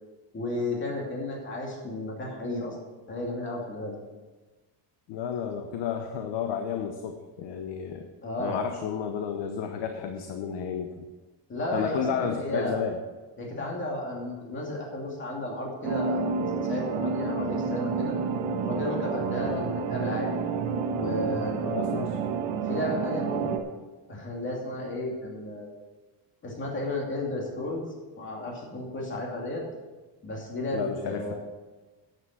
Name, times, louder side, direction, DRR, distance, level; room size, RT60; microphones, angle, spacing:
voice 1, 0.3-2.8 3.1-4.0 8.2-8.6 11.5-12.7 13.4-16.3 16.6-18.2 18.6-20.5 20.9-21.7 22.7-23.6 24.1-25.7 26.4-27.9 28.2-29.6 30.2-31.3, left 1 dB, 25° left, -2 dB, 2.7 m, -33 dB
voice 2, 5.1-8.1 8.4-11.1 11.7-13.0 19.4-19.7 21.7-22.2 30.7-31.3, left 7 dB, 75° left, 6 dB, 1.0 m, -32 dB
sound 1, 15.8-23.6, right 5 dB, 75° right, 1.4 m, -29 dB
9.6 x 9.0 x 6.1 m, 1.2 s
cardioid pair, 165°, 43 cm